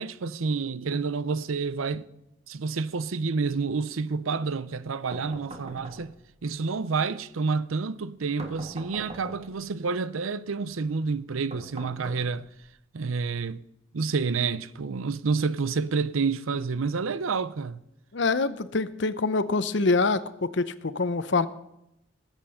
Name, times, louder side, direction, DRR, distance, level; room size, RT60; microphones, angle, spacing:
voice 1, 0.0-2.1 2.5-6.1 6.4-12.5 12.9-13.6 13.9-17.8, right 4 dB, 90° right, 0.6 m, -29 dB
sound 1, 5.1-6.4 8.4-9.7 11.5-12.7, right 1 dB, 30° right, 1.5 m, -42 dB
voice 2, 18.1-21.5, left 3 dB, 60° left, 0.7 m, -25 dB
20.0 x 8.2 x 5.7 m
head